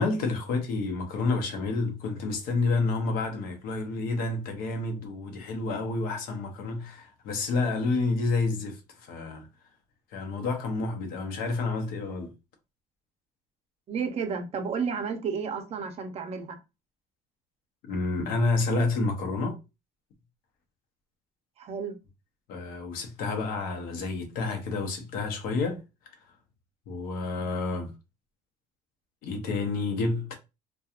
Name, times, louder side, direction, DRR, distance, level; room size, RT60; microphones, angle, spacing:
voice 1, 0.0-9.5 10.1-12.3 17.8-19.6 22.5-25.8 26.9-27.9 29.2-30.4, left 3 dB, 75° left, 0.8 m, -29 dB
voice 2, 13.9-16.6 21.6-22.0, right 6 dB, 45° right, 0.6 m, -32 dB
2.7 x 2.2 x 2.4 m
cardioid pair, 130°, 15 cm